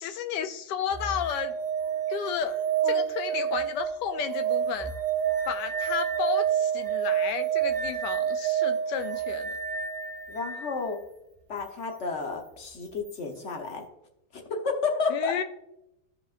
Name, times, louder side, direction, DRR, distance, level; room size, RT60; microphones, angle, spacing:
voice 1, 0.0-1.6 2.1-4.9 5.5-9.6 15.1-15.4, left 8 dB, 75° left, 9 dB, 1.0 m, -32 dB
sound 1, 0.9-10.7 13.0-13.1, right 8 dB, 35° right, 0.8 m, -29 dB
voice 2, 10.3-11.0 11.5-13.8 14.3-15.3, left 4 dB, 45° left, 2 dB, 1.0 m, -31 dB
14.0 x 5.0 x 2.5 m, 0.86 s
omnidirectional pair, 2.1 m